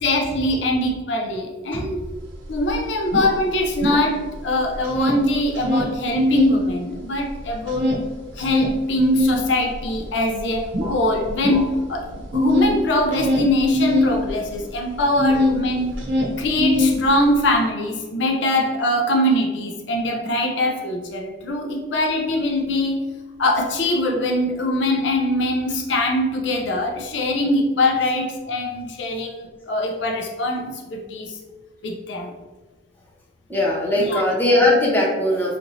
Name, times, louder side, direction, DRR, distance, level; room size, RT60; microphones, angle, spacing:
voice 1, 0.0-2.1 2.5-8.0 8.4-15.9 16.4-23.0 23.4-31.4 31.8-32.3 34.0-34.2, left 1 dB, 70° left, 2 dB, 0.5 m, -22 dB
sound 1, 2.1-2.2 2.4-4.4 4.7-6.6 6.9-15.6 15.9-17.4, left 2 dB, 80° right, 0.8 m, -22 dB
voice 2, 33.5-35.6, left 1 dB, 10° left, -4 dB, 0.9 m, -19 dB
5.0 x 2.9 x 2.7 m, 1.3 s
head